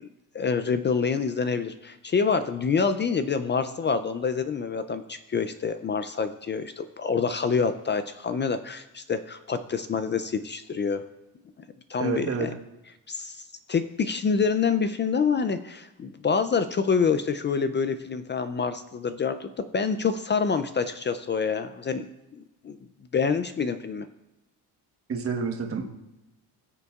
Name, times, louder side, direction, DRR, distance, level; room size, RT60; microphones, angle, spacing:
voice 1, 0.3-11.0 11.9-12.5 13.1-22.0 22.3-22.8 23.1-24.1, left 5 dB, 30° left, 11 dB, 0.4 m, -27 dB
voice 2, 12.0-12.5 25.1-25.9, right 5 dB, 35° right, 3 dB, 1.2 m, -28 dB
19.5 x 6.8 x 2.4 m, 0.96 s
cardioid pair, 140°, 40 cm